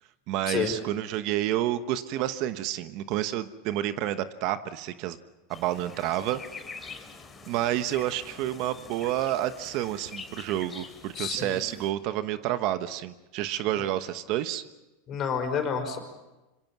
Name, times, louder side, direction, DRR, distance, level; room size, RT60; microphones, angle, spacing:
voice 1, 0.3-5.2 5.5-6.4 7.5-14.6, right 13 dB, 55° right, 11 dB, 1.1 m, -29 dB
sound 1, 5.5-11.9, left 4 dB, 15° left, 3.4 m, -46 dB
voice 2, 11.1-11.6 15.1-16.0, left 7 dB, 35° left, 5 dB, 5.3 m, -29 dB
26.0 x 25.0 x 6.0 m, 1.1 s
supercardioid pair, 125°, 0 cm